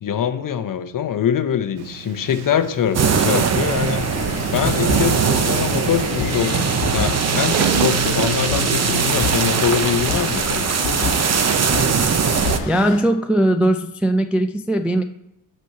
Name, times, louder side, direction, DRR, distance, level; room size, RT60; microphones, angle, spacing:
voice 1, 0.0-4.1 4.5-10.7, left 9 dB, 45° left, 10 dB, 0.8 m, -23 dB
Sliding door, 1.8-9.6, right 8 dB, 80° right, 0.7 m, -28 dB
sound 1, 2.9-12.6, right 6 dB, 35° right, 0.8 m, -21 dB
sound 2, 4.0-13.0, left 4 dB, 80° left, 1.6 m, -28 dB
voice 2, 12.7-15.0, right 1 dB, 5° right, 6 dB, 0.3 m, -19 dB
6.3 x 4.3 x 6.5 m, 0.86 s
supercardioid pair, 70°, 47 cm